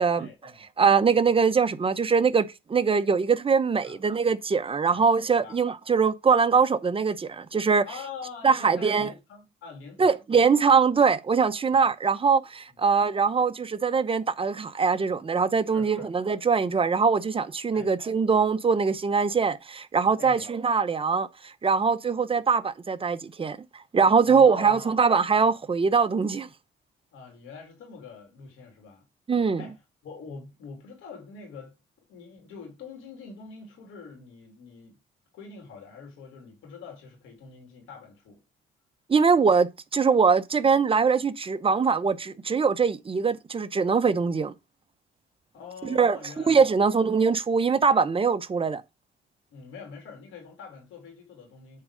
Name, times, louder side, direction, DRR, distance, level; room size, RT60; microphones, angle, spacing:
voice 1, 0.1-0.6 3.8-4.0 4.9-5.0 5.4-5.6 7.8-10.2 11.7-11.8 12.7-12.8 15.7-16.1 17.7-17.9 20.2-20.5 24.2-24.9 27.1-29.0 29.6-31.7 32.1-35.0 35.3-38.4 45.5-47.0 49.5-51.8, left 5 dB, 90° left, 3.3 m, -44 dB
voice 2, 0.8-7.9 8.4-9.1 10.0-26.5 29.3-29.6 39.1-44.5 45.9-48.8, right 5 dB, 25° right, 0.8 m, -22 dB
8.6 x 3.7 x 5.0 m
cardioid pair, 90°, 20 cm